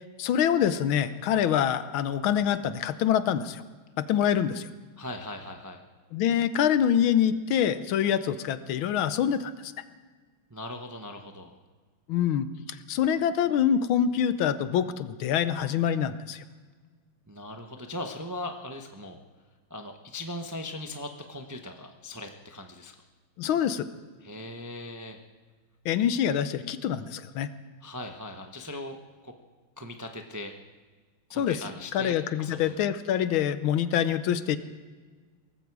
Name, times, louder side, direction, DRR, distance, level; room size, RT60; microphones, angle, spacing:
voice 1, 0.2-3.6 4.0-4.7 6.1-9.7 12.1-12.5 12.9-16.4 23.4-23.8 25.8-27.5 31.3-31.6 31.9-34.6, left 9 dB, 75° left, 13 dB, 1.5 m, -25 dB
voice 2, 5.0-5.8 10.5-11.5 17.3-19.2 19.7-22.9 24.2-25.2 27.8-29.0 29.2-29.3 29.8-30.5 31.3-32.8, left 1 dB, 25° right, 4 dB, 0.4 m, -39 dB
18.5 x 15.0 x 4.8 m, 1.4 s
omnidirectional pair, 2.3 m